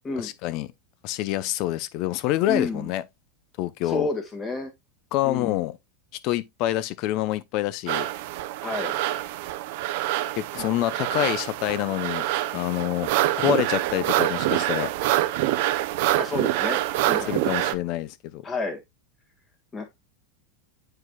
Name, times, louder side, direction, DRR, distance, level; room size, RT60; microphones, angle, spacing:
voice 1, 0.2-0.7 1.0-3.0 3.6-4.1 5.1-5.8 6.2-8.1 10.4-13.1 13.4-14.9 17.3-18.4, left 14 dB, 40° left, 0.6 m, -27 dB
voice 2, 2.5-2.9 3.8-4.7 5.2-5.7 8.6-9.0 16.1-16.8 17.1-17.4 18.4-18.8 19.7-19.9, left 3 dB, 15° left, 1.7 m, -30 dB
sound 1, 7.9-17.7, right 15 dB, 50° right, 0.6 m, -26 dB
9.6 x 4.8 x 2.3 m
supercardioid pair, 170°, 0 cm